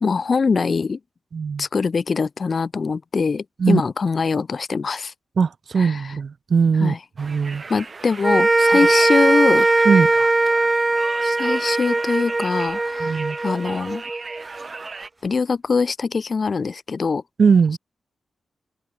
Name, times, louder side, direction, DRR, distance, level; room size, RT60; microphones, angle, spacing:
voice 1, 0.0-1.0 1.6-5.1 5.8-6.1 6.8-7.0 7.7-9.7 11.2-14.1 15.2-17.2, left 5 dB, 55° left, 0.5 m, -23 dB
voice 2, 1.3-1.6 3.6-3.8 5.4-7.6 9.8-10.1 13.0-13.4 17.4-17.8, right 5 dB, 60° right, 0.7 m, -19 dB
Conversation, 7.2-15.1, right 4 dB, 45° right, 6.4 m, -38 dB
sound 1, 8.2-14.7, right 2 dB, 30° right, 1.3 m, -20 dB
cardioid pair, 60°, 0 cm